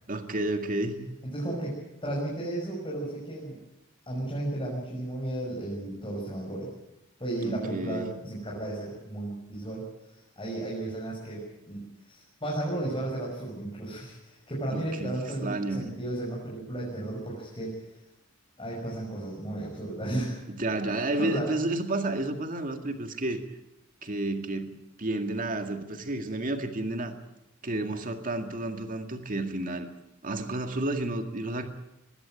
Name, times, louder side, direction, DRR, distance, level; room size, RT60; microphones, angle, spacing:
voice 1, 0.1-1.1 7.4-8.1 14.7-15.2 15.4-15.9 20.5-23.4 24.0-27.2 27.6-29.9 30.2-31.6, right 2 dB, 40° right, 6 dB, 2.1 m, -31 dB
voice 2, 1.3-3.6 4.1-6.7 7.2-9.8 10.4-17.8 18.6-20.5 20.9-21.5, right 1 dB, 25° left, -4 dB, 6.1 m, -34 dB
21.0 x 16.0 x 9.0 m, 0.89 s
head